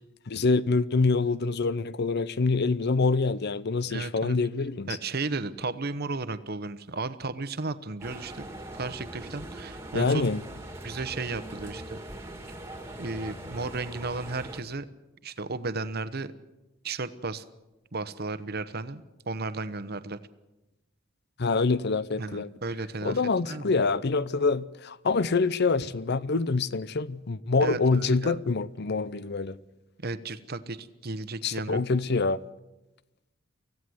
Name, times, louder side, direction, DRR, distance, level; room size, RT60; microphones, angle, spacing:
voice 1, 0.3-5.0 9.9-10.4 21.4-22.5 23.0-29.6 31.4-32.4, left 4 dB, 55° left, 0.7 m, -26 dB
voice 2, 3.9-4.4 4.9-8.5 8.7-10.3 10.8-12.0 13.0-14.9 15.2-16.3 16.8-17.4 17.9-20.2 22.2-23.7 27.6-28.4 30.0-31.8, right 3 dB, 50° right, 1.0 m, -34 dB
Open-Top Shopping Center, 8.0-14.6, right 1 dB, 15° right, 2.2 m, -41 dB
24.5 x 16.0 x 7.9 m
head